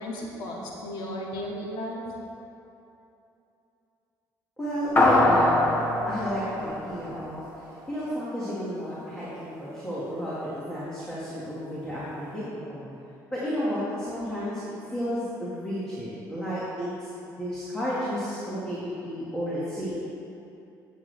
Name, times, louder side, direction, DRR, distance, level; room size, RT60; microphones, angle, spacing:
voice 1, 0.0-2.0, left 1 dB, 80° left, -3 dB, 2.2 m, -35 dB
voice 2, 4.6-12.9 13.3-14.6 14.9-20.0, equal, 10° left, -10 dB, 2.0 m, -32 dB
sound 1, 5.0-7.7, left 1 dB, 30° left, 1.5 m, -23 dB
16.0 x 7.5 x 3.4 m, 2.8 s
cardioid pair, 155°, 8 cm